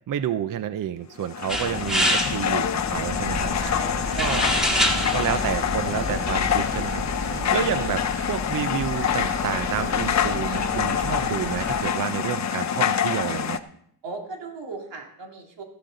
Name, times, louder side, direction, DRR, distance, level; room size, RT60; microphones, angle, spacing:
voice 1, 0.1-4.5 4.9-7.0 7.5-13.6, right 9 dB, 45° right, 12 dB, 0.5 m, -30 dB
sound 1, 1.2-13.6, left 9 dB, 40° left, 0.5 m, -26 dB
sound 2, 1.5-6.9, equal, ahead, 2.0 m, -27 dB
sound 3, 2.8-11.8, equal, 30° right, 4.8 m, -33 dB
voice 2, 3.6-4.4 14.0-15.6, right 3 dB, 70° right, 2 dB, 2.2 m, -37 dB
14.5 x 11.5 x 3.8 m, 0.68 s
wide cardioid pair, 150°, 45 cm